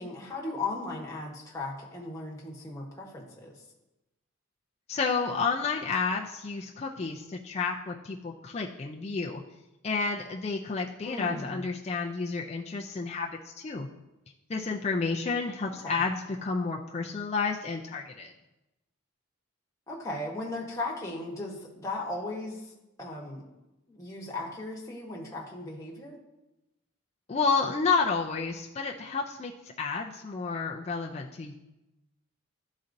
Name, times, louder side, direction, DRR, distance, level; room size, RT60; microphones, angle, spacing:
voice 1, 0.0-3.6 11.0-11.6 15.8-16.1 19.9-23.4 23.9-26.2, left 2 dB, 15° left, -3 dB, 1.0 m, -37 dB
voice 2, 4.9-9.4 9.8-13.9 14.5-18.3 27.3-29.5 29.8-31.5, left 4 dB, 30° left, -1 dB, 0.3 m, -30 dB
11.5 x 4.1 x 2.6 m, 0.97 s
head